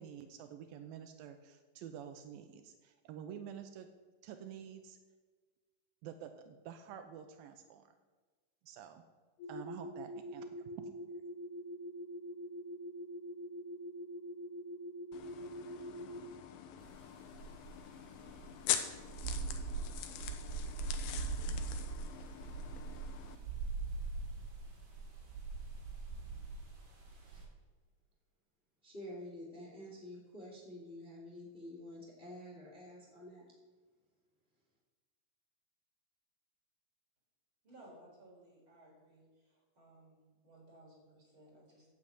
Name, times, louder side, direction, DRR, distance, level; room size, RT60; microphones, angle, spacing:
voice 1, 0.0-3.9 4.2-5.0 6.0-7.9 8.6-9.0 9.5-10.5, right 8 dB, 85° right, 8 dB, 2.5 m, -49 dB
sound 1, 9.4-16.2, equal, 55° left, 3.7 m, -44 dB
sound 2, 15.1-23.4, left 10 dB, 80° left, 2.6 m, -43 dB
sound 3, 16.8-16.9 17.3-27.4, right 4 dB, 50° right, 4.1 m, -41 dB
voice 2, 28.8-33.5, left 1 dB, 20° left, -2 dB, 2.4 m, -49 dB
voice 3, 37.6-41.9, right 1 dB, 35° right, -3 dB, 5.2 m, -60 dB
9.1 x 8.8 x 8.0 m, 1.4 s
omnidirectional pair, 4.1 m